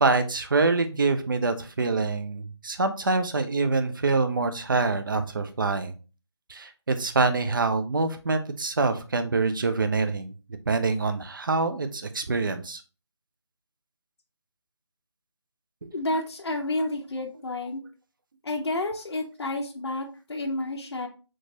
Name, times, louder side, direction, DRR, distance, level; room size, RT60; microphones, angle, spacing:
voice 1, 0.0-5.9 6.5-10.3 10.7-12.8 15.8-15.9, right 3 dB, 45° right, 8 dB, 0.5 m, -25 dB
voice 2, 15.9-17.8 18.4-21.1, left 2 dB, 60° left, 1 dB, 0.7 m, -30 dB
4.3 x 3.0 x 2.9 m, 0.33 s
figure-of-eight pair, 165°, 15 cm